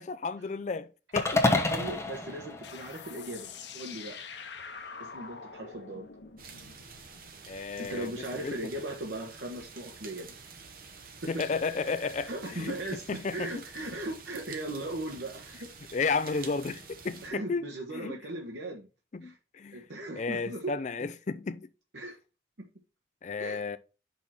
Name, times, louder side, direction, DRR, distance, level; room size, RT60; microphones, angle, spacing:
voice 1, 0.0-1.4 7.5-8.6 11.3-12.8 13.1-13.5 15.9-17.6 17.9-18.2 19.1-19.8 20.2-21.7 23.2-23.8, left 4 dB, 40° left, 0.4 m, -33 dB
sound 1, 1.2-3.5, left 2 dB, 15° left, 1.0 m, -29 dB
voice 2, 1.5-4.2 5.0-6.1 7.8-10.3 12.3-13.1 13.3-15.7 16.3-16.5 17.2-18.9 19.2-19.4 19.7-20.7 21.9-22.2 23.4-23.6, right 1 dB, 85° right, 1.2 m, -38 dB
sound 2, 2.6-7.9, left 5 dB, 85° left, 1.0 m, -45 dB
sound 3, 6.4-17.3, right 5 dB, 55° right, 1.2 m, -48 dB
6.2 x 5.5 x 4.3 m
head